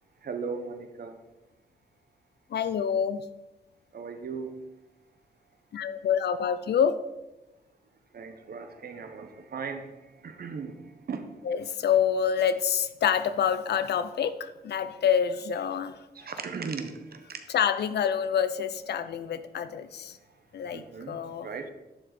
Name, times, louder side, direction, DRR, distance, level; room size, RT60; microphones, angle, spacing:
voice 1, 0.2-1.2 3.9-4.5 8.1-10.8 11.1-11.2 16.1-17.0 17.3-17.4 20.7-21.2 21.4-21.7, right 5 dB, 70° right, 7 dB, 1.3 m, -37 dB
voice 2, 2.5-3.3 5.7-7.0 11.4-16.1 17.5-20.2 20.5-21.5, left 8 dB, 90° left, 11 dB, 0.6 m, -27 dB
11.5 x 7.1 x 4.2 m, 1.0 s
wide cardioid pair, 95°, 17 cm